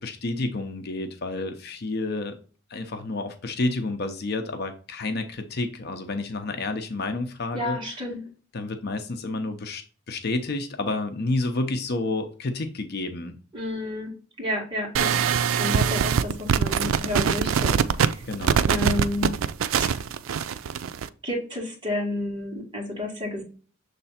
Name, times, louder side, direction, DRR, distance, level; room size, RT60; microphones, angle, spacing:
voice 1, 0.0-2.4 2.7-7.8 8.5-13.4 18.2-18.7, left 2 dB, 55° left, 7 dB, 0.7 m, -30 dB
voice 2, 7.5-8.2 13.5-15.1 15.6-18.2 18.7-19.3 19.8-19.9 21.2-23.4, left 1 dB, 25° right, -3 dB, 2.3 m, -30 dB
sound 1, 15.0-21.1, right 7 dB, 80° right, 0.4 m, -23 dB
6.7 x 3.3 x 4.2 m, 0.38 s
head